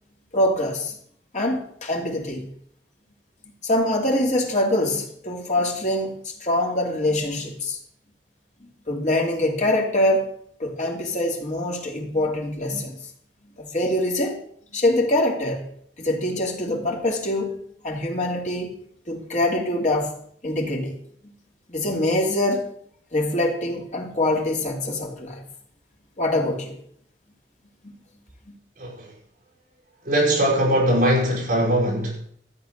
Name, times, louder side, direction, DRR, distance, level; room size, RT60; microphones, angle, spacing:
voice 1, 0.3-1.0 1.3-2.5 3.6-7.8 8.6-10.3 10.6-13.0 13.6-14.4 14.7-15.7 16.0-17.5 17.8-18.8 19.1-20.1 20.4-21.0 21.7-22.6 23.1-25.4 26.2-26.8 27.8-27.9 28.5-28.6, left 1 dB, 45° left, 2.8 m, -24 dB
voice 2, 28.8-29.1 30.0-32.2, right 1 dB, 50° right, 6.0 m, -21 dB
14.0 x 8.0 x 6.5 m
head